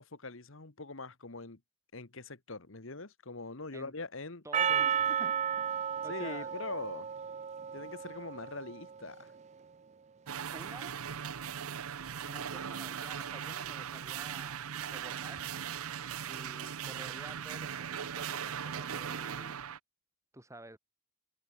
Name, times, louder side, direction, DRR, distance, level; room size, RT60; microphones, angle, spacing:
voice 1, 0.0-1.6 1.9-4.4 6.1-7.1 7.7-9.3, left 3 dB, 65° left, 1.6 m, -43 dB
voice 2, 4.4-6.5 10.5-10.9 12.2-15.5 16.3-19.6 20.3-20.8, right 1 dB, 15° right, 5.6 m, -51 dB
Percussion, 4.5-9.0, right 8 dB, 30° right, 0.4 m, -33 dB
sound 1, 10.3-19.8, right 8 dB, 90° right, 0.7 m, -39 dB
open air
head